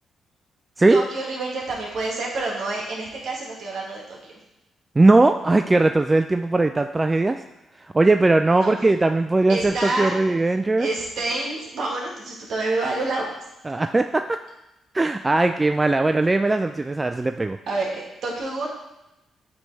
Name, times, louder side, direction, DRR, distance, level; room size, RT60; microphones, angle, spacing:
voice 1, 0.9-4.4 8.4-8.8 9.5-10.2 10.8-13.3 17.7-18.7, right 2 dB, 65° right, -3 dB, 1.9 m, -28 dB
voice 2, 5.0-7.4 7.9-10.9 13.7-14.2 14.9-17.6, right 2 dB, 25° right, 7 dB, 0.3 m, -19 dB
7.8 x 3.3 x 4.0 m, 0.94 s
supercardioid pair, 55°, 0 cm